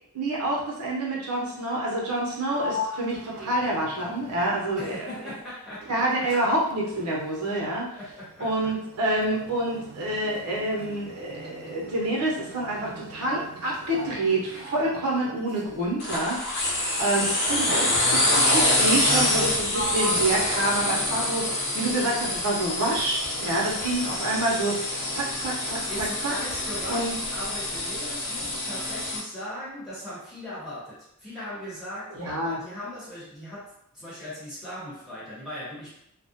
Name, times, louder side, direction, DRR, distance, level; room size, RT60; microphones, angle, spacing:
voice 1, 0.1-5.1 5.9-7.9 8.4-16.4 17.0-25.8 26.2-26.3 26.9-27.1 32.2-32.6, right 1 dB, 85° right, -3 dB, 0.8 m, -27 dB
Sliding door, 2.2-5.4 5.7-15.9 16.7-17.1 17.7-18.6 19.2-21.7, equal, 45° right, 0.3 m, -40 dB
voice 2, 4.7-6.3 7.9-8.8 25.9-36.0, equal, ahead, -11 dB, 1.0 m, -39 dB
sound 1, 16.0-29.2, left 1 dB, 50° left, 0.6 m, -26 dB
2.5 x 2.1 x 2.7 m, 0.74 s
head